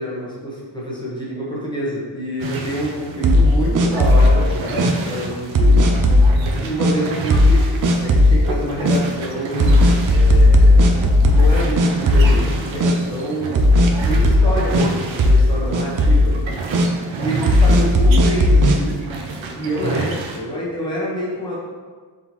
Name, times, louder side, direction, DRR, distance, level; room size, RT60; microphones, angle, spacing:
voice 1, 0.0-5.9 6.5-7.7 8.0-10.9 11.3-13.6 14.0-16.3 17.2-19.1 19.5-21.5, equal, 10° left, -6 dB, 1.0 m, -27 dB
sound 1, 2.4-20.4, right 4 dB, 80° right, 0.7 m, -30 dB
sound 2, 3.2-4.3 4.8-4.9 5.5-6.3 6.8-6.9 7.3-7.6 7.8-8.4 8.8-9.0 9.6-11.5 11.8-12.5 12.8-12.9 13.5-14.9 15.2-15.5 15.7-16.2 16.7-16.9 17.5-18.8, left 1 dB, 45° right, 0.4 m, -13 dB
4.2 x 3.6 x 2.9 m, 1.5 s
wide cardioid pair, 160°, 46 cm